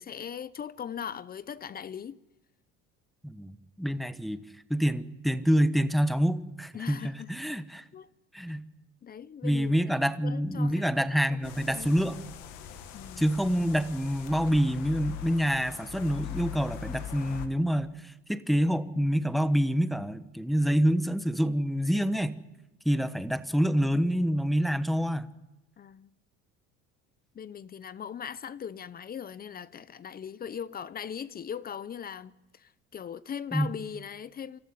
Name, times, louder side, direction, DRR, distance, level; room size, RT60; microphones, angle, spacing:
voice 1, 0.0-2.2 6.7-7.3 7.9-8.1 9.0-9.8 10.2-10.8 11.1-11.4 11.7-11.9 12.9-13.3 25.8-26.1 27.3-34.6, left 8 dB, 30° left, 0.7 m, -39 dB
voice 2, 3.2-4.4 4.7-7.8 8.3-8.6 9.4-12.2 13.2-22.4 22.8-25.3 33.5-33.7, equal, ahead, 1.1 m, -27 dB
sound 1, 11.4-17.5, left 10 dB, 80° left, 2.1 m, -41 dB
25.5 x 14.0 x 9.7 m
cardioid pair, 110°, 30 cm